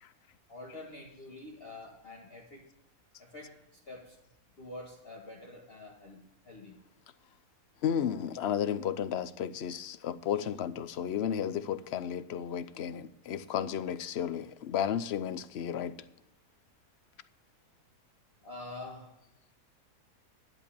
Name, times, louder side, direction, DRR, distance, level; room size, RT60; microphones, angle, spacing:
voice 1, 0.5-2.7 3.2-4.2 4.6-6.8 18.4-19.2, left 2 dB, 40° left, 1.8 m, -47 dB
voice 2, 7.8-16.0, left 9 dB, 55° left, 0.8 m, -33 dB
11.0 x 8.3 x 8.6 m
omnidirectional pair, 1.6 m